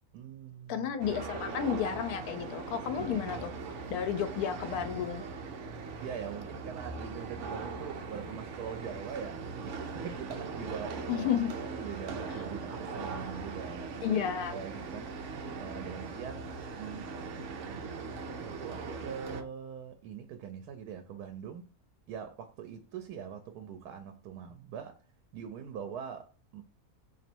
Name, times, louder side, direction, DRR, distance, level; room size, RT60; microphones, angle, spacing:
voice 1, 0.1-0.9 3.0-3.2 6.0-11.3 11.7-14.1 14.5-16.5 16.8-17.2 18.4-21.7 22.1-25.0 25.3-26.6, right 7 dB, 90° right, 1.1 m, -43 dB
voice 2, 0.7-3.5 3.9-5.2 11.1-11.5 14.0-14.6, left 8 dB, 80° left, 1.1 m, -32 dB
sound 1, 1.0-19.4, right 4 dB, 60° right, 0.9 m, -40 dB
3.0 x 2.8 x 4.3 m
omnidirectional pair, 1.6 m